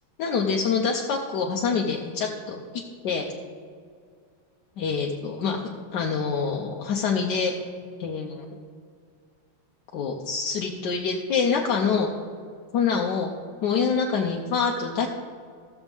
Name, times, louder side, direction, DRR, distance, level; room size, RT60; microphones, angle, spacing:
voice 1, 0.2-2.6 3.0-3.2 4.8-5.6 5.9-7.5 8.0-8.4 9.9-12.1 12.7-13.3 13.6-15.1, left 5 dB, 65° left, -1 dB, 1.2 m, -25 dB
15.5 x 7.2 x 3.5 m, 2.1 s
omnidirectional pair, 2.4 m